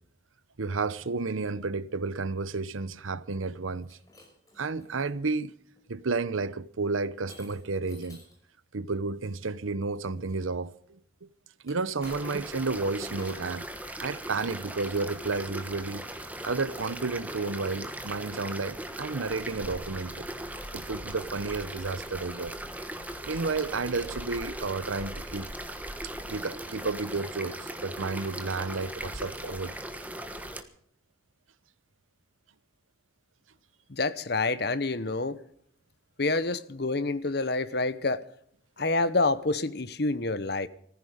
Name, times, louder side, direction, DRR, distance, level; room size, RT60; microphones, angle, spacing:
voice 1, 0.6-4.0 4.6-5.5 5.9-8.2 8.7-11.3 11.6-13.7 14.0-16.0 16.4-20.3 20.7-22.5 23.3-25.5 26.3-29.7, right 3 dB, 85° right, 0.9 m, -32 dB
Shatter, 3.7-5.1 5.8-6.1 7.3-8.4 11.6-12.6 13.0-13.6, left 1 dB, 15° left, 5.8 m, -53 dB
sound 1, 12.0-30.6, right 1 dB, 10° right, 1.3 m, -39 dB
voice 2, 33.9-35.4 36.2-38.2 38.8-40.7, left 3 dB, 55° left, 1.0 m, -27 dB
18.5 x 15.0 x 5.1 m
head